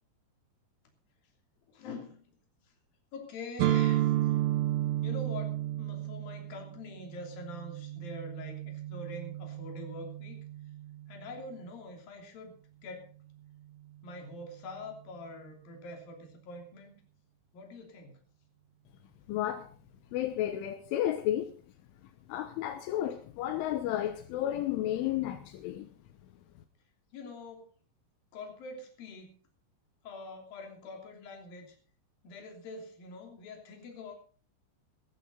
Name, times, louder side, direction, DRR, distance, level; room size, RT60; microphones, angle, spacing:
voice 1, 1.7-2.2 3.1-4.1 5.0-10.4 11.1-12.6 12.8-13.1 14.0-17.0 17.5-18.2 27.1-27.7 28.3-29.4 30.0-31.8 32.2-34.1, left 2 dB, 50° left, 3 dB, 4.5 m, -45 dB
sound 1, 3.6-11.4, right 13 dB, 85° right, 3.4 m, -32 dB
voice 2, 19.3-19.7 20.1-21.5 22.3-25.9, left 12 dB, 80° left, 8 dB, 3.5 m, -32 dB
17.5 x 13.5 x 4.0 m, 0.38 s
omnidirectional pair, 5.6 m